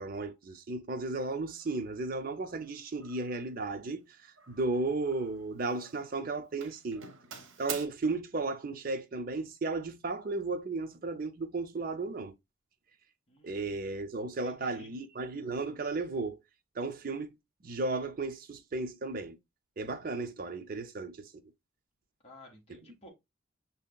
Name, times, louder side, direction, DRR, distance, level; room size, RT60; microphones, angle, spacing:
voice 1, 0.0-7.0 7.6-12.3 13.4-16.4 16.8-17.4 17.6-19.4 19.8-21.3, right 3 dB, 45° right, 0.5 m, -34 dB
Doorbell, 1.6-1.8 2.4-2.7 3.0-3.4 4.4-5.4 5.7-6.2 6.6-7.9, right 6 dB, 80° right, 0.7 m, -45 dB
voice 2, 13.3-14.9 22.2-23.1, left 1 dB, 30° left, 1.1 m, -55 dB
5.6 x 2.8 x 2.2 m
head